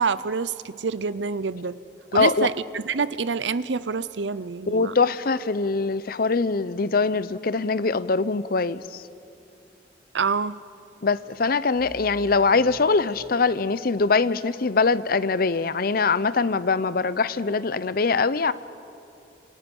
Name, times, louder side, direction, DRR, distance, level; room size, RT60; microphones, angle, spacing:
voice 1, 0.0-1.8 2.1-4.9 10.1-10.6, right 5 dB, 75° right, 16 dB, 0.7 m, -27 dB
voice 2, 2.1-2.5 4.7-9.0 11.0-18.5, left 4 dB, 55° left, 16 dB, 0.7 m, -23 dB
sound 1, 8.8-9.6 11.7-13.8, equal, 30° right, 3.6 m, -48 dB
30.0 x 27.5 x 5.4 m, 2.6 s
head